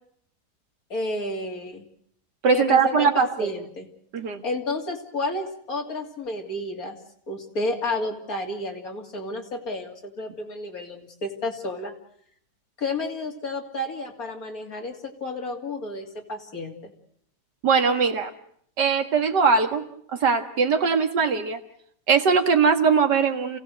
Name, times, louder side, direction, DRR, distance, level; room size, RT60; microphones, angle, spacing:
voice 1, 0.9-1.9 2.5-3.9 4.4-7.0 7.3-11.9 12.8-16.9, left 2 dB, 60° left, 1 dB, 3.4 m, -31 dB
voice 2, 2.4-3.5 4.1-4.4 17.6-18.3 18.8-19.8 20.1-21.6 22.1-23.6, right 5 dB, 85° right, 7 dB, 2.3 m, -21 dB
28.5 x 16.5 x 8.0 m, 0.67 s
omnidirectional pair, 1.8 m